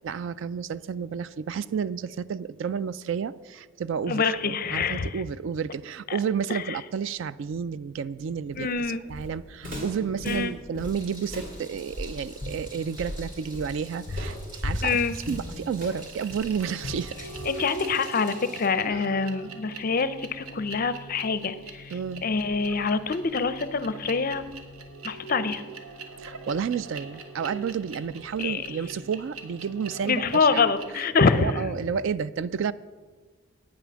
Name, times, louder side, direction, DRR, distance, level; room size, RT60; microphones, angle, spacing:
voice 1, 0.0-14.4 14.6-15.0 15.3-17.3 18.9-19.0 21.9-22.2 26.2-30.7 30.9-31.1 31.3-32.7, right 6 dB, 60° right, 16 dB, 0.3 m, -31 dB
voice 2, 4.1-5.2 6.1-6.2 6.5-6.6 8.6-9.0 10.2-10.5 14.8-15.1 17.5-21.9 22.2-24.4 25.0-25.6 28.4-28.6 30.0-31.6, left 4 dB, 40° left, 13 dB, 0.5 m, -25 dB
Walk footsteps, 8.5-17.8, left 1 dB, 40° right, 2.7 m, -36 dB
Meow, 10.8-18.7, right 1 dB, 20° right, 2.3 m, -48 dB
sound 1, 15.1-15.4 16.0-30.9, right 3 dB, 80° right, 1.1 m, -42 dB
9.1 x 8.8 x 6.2 m, 1.4 s
head